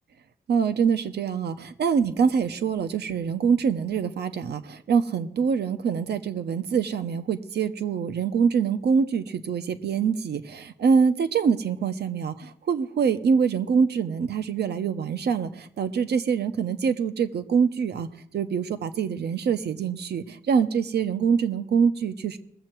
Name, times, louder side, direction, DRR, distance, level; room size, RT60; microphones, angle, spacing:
voice 1, 0.5-18.1 18.3-22.4, right 6 dB, 85° right, 10 dB, 0.9 m, -24 dB
20.5 x 7.6 x 4.6 m, 0.68 s
wide cardioid pair, 150°, 17 cm